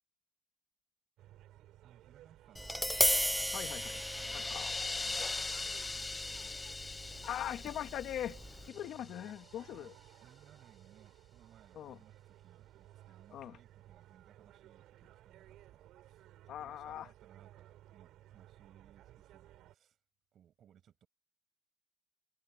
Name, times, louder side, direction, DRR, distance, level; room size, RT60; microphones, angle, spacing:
sound 1, 1.2-19.7, right 14 dB, 90° right, 5.8 m, -58 dB
voice 1, 1.8-2.9 4.1-4.5 4.9-6.8 8.5-9.2 9.7-9.9 10.2-20.0 20.3-21.1, right 10 dB, 65° right, 7.1 m, -64 dB
Tap, 2.6-8.7, equal, ahead, 0.6 m, -36 dB
sound 2, 3.2-9.4, left 3 dB, 25° left, 1.8 m, -41 dB
voice 2, 3.5-4.0 4.3-4.7 7.2-8.4 8.7-9.9 11.8-12.0 13.3-13.5 16.5-17.1, left 11 dB, 80° left, 2.1 m, -41 dB
cardioid pair, 90°, 0 cm